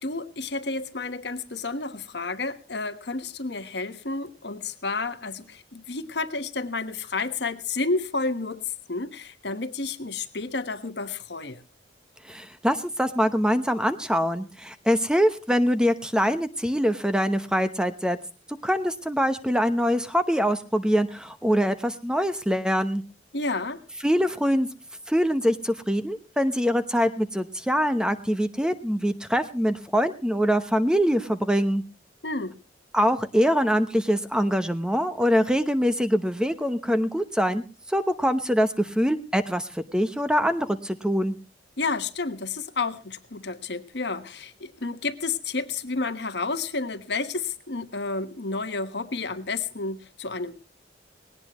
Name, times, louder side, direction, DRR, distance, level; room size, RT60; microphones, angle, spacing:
voice 1, 0.0-8.6 8.9-11.6 23.3-23.8 32.2-32.6 41.8-50.6, left 3 dB, 65° left, 10 dB, 1.3 m, -31 dB
voice 2, 12.3-18.2 18.6-23.0 24.0-24.7 25.1-31.8 32.9-37.6 37.9-41.3, equal, 5° right, 10 dB, 0.9 m, -24 dB
19.0 x 18.0 x 3.1 m, 0.34 s
head